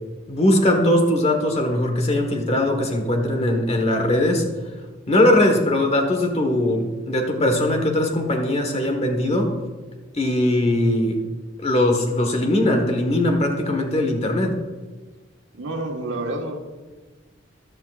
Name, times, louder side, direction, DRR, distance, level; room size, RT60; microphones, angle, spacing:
voice 1, 0.3-4.5 5.1-9.5 10.1-11.2 11.6-14.6, left 1 dB, 35° left, 3 dB, 1.4 m, -20 dB
voice 2, 15.5-16.5, right 2 dB, 80° right, 2 dB, 1.5 m, -28 dB
14.0 x 12.0 x 2.5 m, 1.3 s
head